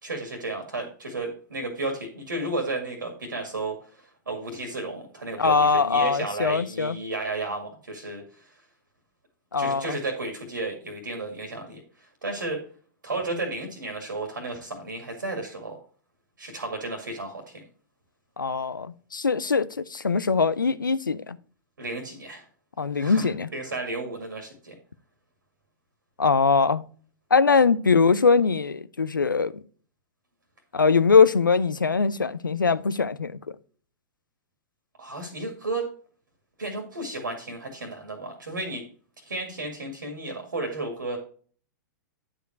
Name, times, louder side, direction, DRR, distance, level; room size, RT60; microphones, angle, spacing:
voice 1, 0.0-8.5 9.6-12.6 13.0-15.8 16.4-17.6 21.8-22.4 22.9-24.7 35.0-35.9 36.6-38.8 39.3-41.2, right 2 dB, 80° right, 2.0 m, -33 dB
voice 2, 5.4-7.0 9.5-9.9 18.4-21.4 22.8-23.5 26.2-26.8 27.3-29.5 30.7-33.4, left 5 dB, 85° left, 0.6 m, -22 dB
10.0 x 5.0 x 4.4 m
figure-of-eight pair, 105°, 11 cm